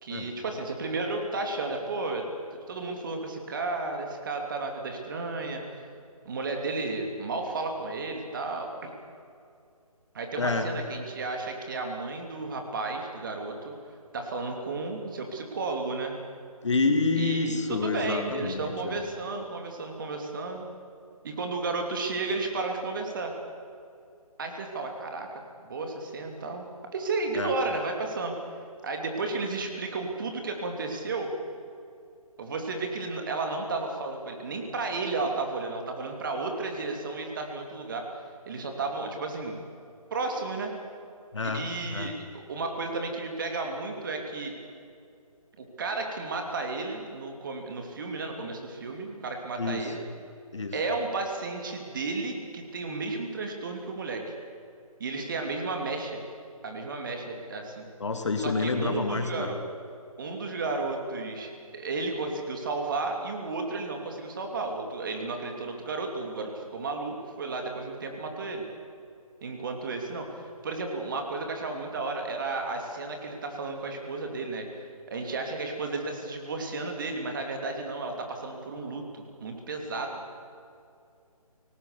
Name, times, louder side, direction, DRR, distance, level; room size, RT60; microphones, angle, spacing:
voice 1, 0.0-2.3 2.7-5.6 6.2-8.9 10.1-13.7 14.1-16.1 17.1-20.6 21.2-23.3 24.4-25.3 25.6-26.7 26.9-28.3 28.8-31.3 32.4-38.1 38.5-39.6 40.1-40.7 41.5-44.5 45.6-50.0 50.7-54.3 55.0-56.2 56.6-57.9 58.4-59.6 60.2-68.6 69.4-80.2, right 3 dB, 35° right, 3 dB, 3.1 m, -33 dB
voice 2, 10.4-10.7 16.6-19.0 27.3-27.5 41.3-42.1 49.6-49.9 50.5-50.8 58.0-59.6, left 3 dB, 50° left, 6 dB, 2.5 m, -28 dB
26.5 x 19.0 x 6.9 m, 2.4 s
figure-of-eight pair, 145°, 19 cm